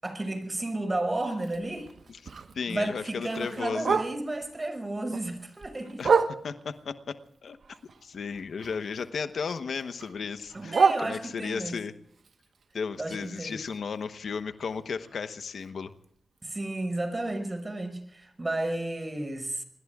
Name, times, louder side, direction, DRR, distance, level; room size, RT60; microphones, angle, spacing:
voice 1, 0.0-1.9 2.7-6.0 10.5-11.8 13.0-13.6 16.4-19.6, right 2 dB, 30° right, 5.9 m, -32 dB
Bark, 1.3-4.5 4.9-6.8 7.3-9.1 9.4-11.7 12.1-16.0 16.4-16.5 16.8-17.2 17.6-17.7 18.0-18.1 18.6-18.7, right 5 dB, 70° right, 1.1 m, -31 dB
voice 2, 2.5-4.0 6.0-6.2 6.4-7.2 7.4-7.6 8.0-11.9 12.7-15.9, left 5 dB, 75° left, 1.0 m, -34 dB
27.0 x 22.0 x 2.4 m
cardioid pair, 45°, 0 cm